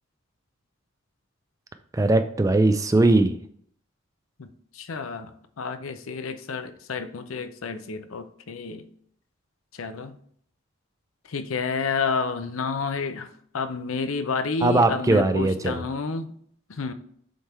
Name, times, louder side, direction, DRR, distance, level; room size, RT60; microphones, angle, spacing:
voice 1, 1.9-3.3 14.6-15.8, right 2 dB, 15° right, 9 dB, 0.3 m, -20 dB
voice 2, 4.7-5.3 5.6-8.9 9.7-10.1 11.3-13.3 13.5-16.3 16.7-16.9, left 5 dB, 85° left, 10 dB, 0.6 m, -30 dB
7.7 x 3.5 x 4.4 m, 0.63 s
head